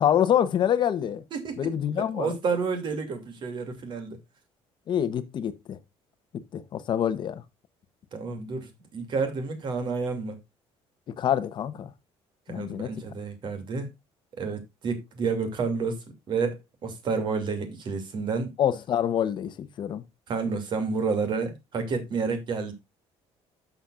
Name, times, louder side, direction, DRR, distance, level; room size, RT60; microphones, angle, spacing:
voice 1, 0.0-1.2 1.6-2.4 4.9-5.8 6.5-7.4 11.2-11.9 12.5-12.9 18.6-20.0, left 9 dB, 45° left, 1.0 m, -26 dB
voice 2, 1.3-1.7 2.2-4.2 8.1-10.4 12.5-13.9 14.4-16.0 16.3-18.5 20.3-22.7, right 4 dB, 45° right, 2.6 m, -30 dB
11.5 x 7.1 x 2.5 m
cardioid pair, 155°, 11 cm